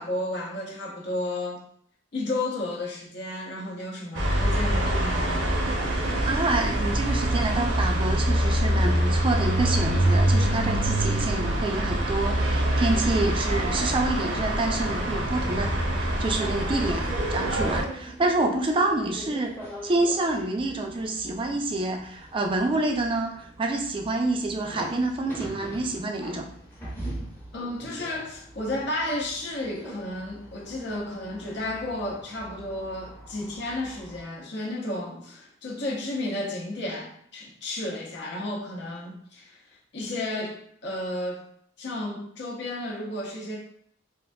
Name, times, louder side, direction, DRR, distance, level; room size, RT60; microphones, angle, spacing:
voice 1, 0.0-1.6 2.1-5.5 27.5-41.4 41.8-43.6, left 1 dB, 60° left, -1 dB, 0.7 m, -32 dB
sound 1, 4.1-17.8, right 1 dB, 65° right, 0.7 m, -25 dB
voice 2, 6.2-15.7 16.0-19.5 19.8-26.5, right 2 dB, 25° right, 2 dB, 0.4 m, -27 dB
sound 2, 16.3-34.2, right 1 dB, 10° left, 0.7 m, -42 dB
3.5 x 2.5 x 2.2 m, 0.64 s
head